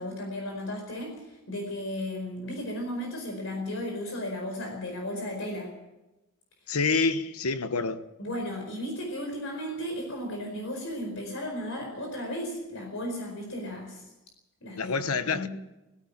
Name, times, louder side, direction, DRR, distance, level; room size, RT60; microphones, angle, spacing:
voice 1, 0.0-5.7 8.2-14.1 14.6-15.5, left 1 dB, 60° left, 4.7 m, -35 dB
voice 2, 6.7-8.0 14.8-15.5, left 4 dB, 75° left, 1.2 m, -27 dB
18.0 x 16.5 x 8.8 m
head